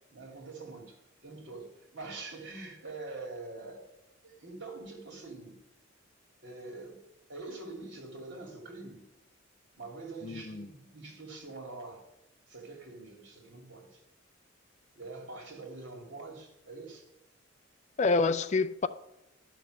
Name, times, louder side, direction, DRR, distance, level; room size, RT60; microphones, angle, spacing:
voice 1, 0.1-3.9 4.2-5.6 6.4-7.0 7.3-9.0 9.8-12.0 12.5-14.0 14.9-17.1, right 3 dB, 60° right, 3.0 m, -45 dB
voice 2, 10.2-10.7 18.0-18.9, left 3 dB, 35° left, 0.4 m, -27 dB
11.5 x 6.2 x 6.5 m
head